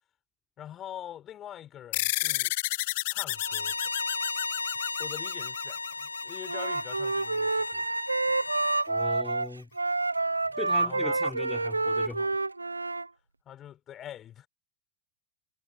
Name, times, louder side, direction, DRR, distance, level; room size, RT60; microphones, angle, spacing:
voice 1, 0.6-2.5 3.0-3.8 5.0-7.9 8.3-8.4 10.4-11.2 13.5-14.5, left 11 dB, 30° left, 4.4 m, -44 dB
sound 1, 1.9-6.8, left 20 dB, 50° left, 0.6 m, -32 dB
Bowed string instrument, 3.3-8.9, left 3 dB, 80° left, 2.0 m, -35 dB
Wind instrument woodwind instrument, 6.4-13.1, right 3 dB, 80° right, 0.9 m, -28 dB
voice 2, 8.9-9.7 10.6-12.4, left 3 dB, 10° left, 4.1 m, -38 dB
figure-of-eight pair, 90°, 0 cm